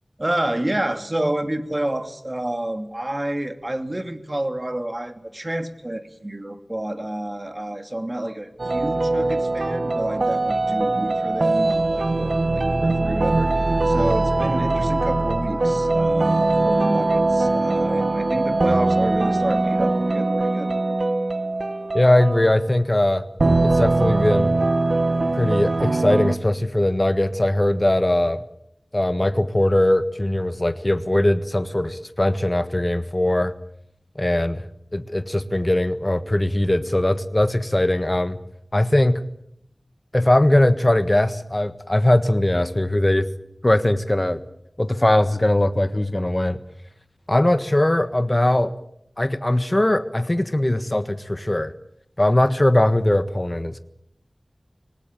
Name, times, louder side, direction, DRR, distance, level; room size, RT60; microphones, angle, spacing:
voice 1, 0.2-20.7, right 1 dB, 35° right, 8 dB, 2.7 m, -29 dB
sound 1, 8.6-22.7 23.4-26.4, right 2 dB, 80° right, 1.2 m, -21 dB
voice 2, 21.9-23.2 23.7-24.5 25.3-28.4 28.9-33.5 34.1-34.7 34.9-38.4 38.7-39.2 40.1-43.3 43.6-44.4 44.8-46.6 47.3-48.7 49.2-51.7 52.2-53.8, left 1 dB, 30° left, 11 dB, 1.5 m, -20 dB
26.0 x 19.5 x 9.0 m, 0.75 s
wide cardioid pair, 45°, 0 cm